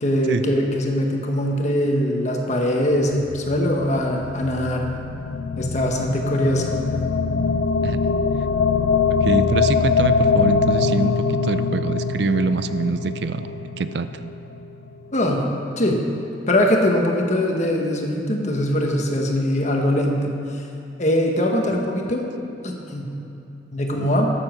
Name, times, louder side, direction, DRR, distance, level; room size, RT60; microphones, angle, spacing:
voice 1, 0.0-4.9 5.6-6.8 15.1-15.5 15.8-16.1 16.5-20.6 21.0-22.3 22.6-23.1 23.7-24.3, left 1 dB, 40° left, 1 dB, 1.4 m, -22 dB
sound 1, 2.9-15.1, left 5 dB, 90° left, 0.5 m, -23 dB
voice 2, 9.2-14.3 23.9-24.1, right 3 dB, 65° right, 11 dB, 0.4 m, -25 dB
13.0 x 7.2 x 6.1 m, 2.8 s
head